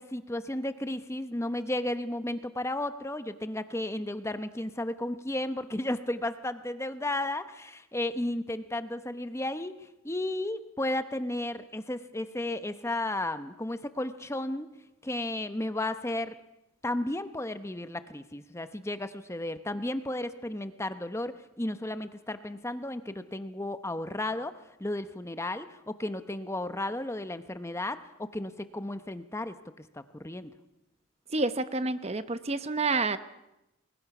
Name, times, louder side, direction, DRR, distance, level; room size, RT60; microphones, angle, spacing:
voice 1, 0.0-14.7 15.0-16.4 16.8-29.6 29.9-30.5, left 1 dB, 15° left, 10 dB, 0.8 m, -33 dB
voice 2, 31.3-33.2, right 3 dB, 30° right, 12 dB, 0.9 m, -28 dB
29.5 x 21.5 x 6.0 m, 0.92 s
head